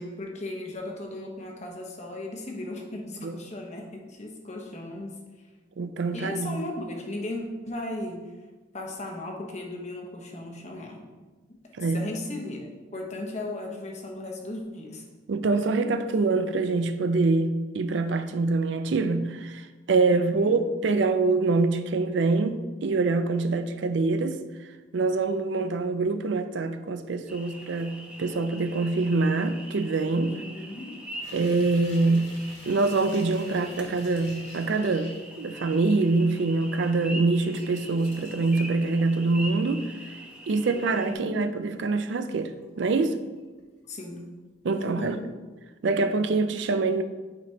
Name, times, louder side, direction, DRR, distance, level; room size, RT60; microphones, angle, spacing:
voice 1, 0.0-5.5 6.1-8.2 8.7-11.0 11.5-15.0 20.1-20.6 30.3-31.0 40.7-41.5 43.9-44.3 44.8-45.2, left 2 dB, 35° left, 1.0 m, -37 dB
voice 2, 5.8-6.6 11.8-12.0 15.3-24.4 24.9-30.3 31.3-32.3 32.7-39.9 40.5-43.2 44.6-45.2 45.8-47.0, right 3 dB, 70° right, 0.4 m, -25 dB
sound 1, 27.3-41.1, equal, 5° right, 0.6 m, -43 dB
sound 2, 31.2-36.0 36.3-36.4 37.4-39.6 40.0-41.3 41.8-43.0 43.4-43.9 44.2-44.3, left 1 dB, 70° left, 1.9 m, -50 dB
9.0 x 5.1 x 2.8 m
head